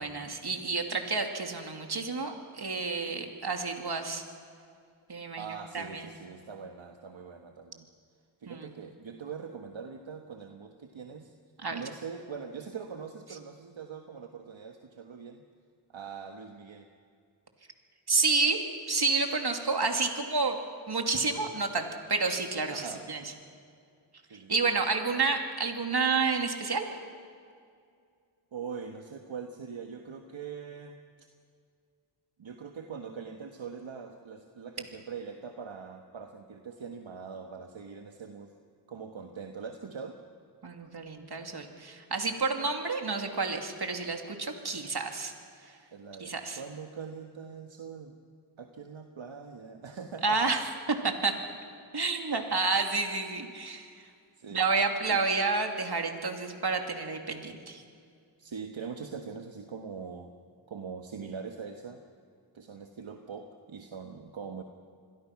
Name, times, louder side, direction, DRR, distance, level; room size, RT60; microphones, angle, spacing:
voice 1, 0.0-4.2 5.1-6.1 8.5-8.7 11.6-11.8 18.1-18.6 18.9-20.6 20.9-23.2 24.3-26.9 40.6-45.3 45.7-45.8 46.2-46.6 50.2-50.7 51.0-51.4 51.9-54.1 54.5-57.8, right 4 dB, 50° right, 4 dB, 2.8 m, -30 dB
voice 2, 5.4-7.9 8.4-11.3 11.7-15.4 15.9-16.9 22.7-23.0 24.3-24.5 28.5-31.0 32.4-38.5 38.9-40.2 45.9-48.2 48.6-50.6 54.4-54.6 55.1-55.2 58.4-60.3 60.7-62.0 62.5-64.6, right 6 dB, 65° right, 4 dB, 1.5 m, -42 dB
27.5 x 21.5 x 6.0 m, 2.3 s
cardioid pair, 55°, 49 cm